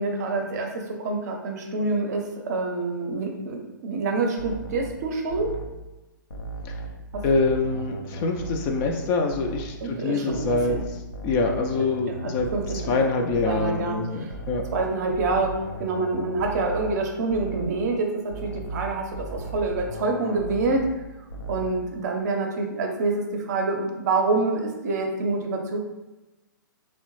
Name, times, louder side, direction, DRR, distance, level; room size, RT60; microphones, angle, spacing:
voice 1, 0.0-5.6 7.1-7.2 9.8-10.8 12.2-13.0 13.5-14.3 14.7-15.5 15.8-20.8 21.5-25.8, right 3 dB, 50° right, 2 dB, 0.6 m, -27 dB
sound 1, 4.4-5.8 6.3-9.0 9.3-9.8 10.3-13.8 14.3-17.0 17.3-17.8 18.3-21.0 21.3-21.8, right 2 dB, 85° left, 0.5 m, -36 dB
voice 2, 7.2-10.8 11.2-12.5 12.9-14.6, left 3 dB, 30° left, 3 dB, 0.3 m, -25 dB
3.4 x 2.1 x 3.1 m, 1.0 s
hypercardioid pair, 125°, 11 cm